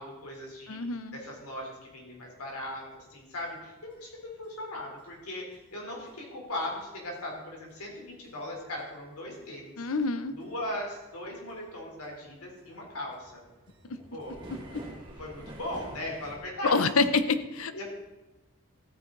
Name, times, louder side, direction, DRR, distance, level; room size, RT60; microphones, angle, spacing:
voice 1, 0.0-0.8 1.1-9.8 10.4-13.4 14.1-14.4 15.2-16.8 17.7-17.8, left 1 dB, 90° left, -1 dB, 3.7 m, -38 dB
voice 2, 0.7-1.2 9.8-10.3 13.8-14.0 14.7-14.8 16.6-17.8, left 4 dB, 75° left, 12 dB, 0.7 m, -27 dB
sound 1, 3.4-3.5 3.9-4.0 4.4-4.5 5.0-5.1 5.5-5.6 6.1-6.2 6.6-6.7 7.2-7.3 7.7-7.8 8.2-8.3 8.8-8.9 9.3-9.4 9.9-10.0 10.4-10.5 10.9-11.2 11.5-11.6 11.9-16.4, right 1 dB, 20° right, 1.8 m, -47 dB
14.0 x 9.2 x 3.9 m, 1.1 s
head